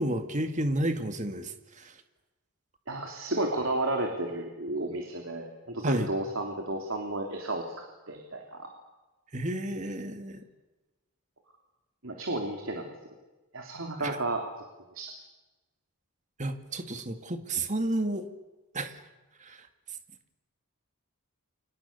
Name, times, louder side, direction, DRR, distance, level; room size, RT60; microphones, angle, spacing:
voice 1, 0.0-1.9 5.8-6.1 9.3-10.4 14.0-14.2 16.4-18.3 18.7-19.0 19.4-19.7, right 1 dB, 35° right, 7 dB, 2.3 m, -31 dB
voice 2, 2.9-8.7 12.0-12.9 13.5-14.4 14.9-15.1, right 2 dB, 65° right, 3 dB, 3.5 m, -32 dB
30.0 x 26.0 x 7.0 m, 1.1 s
head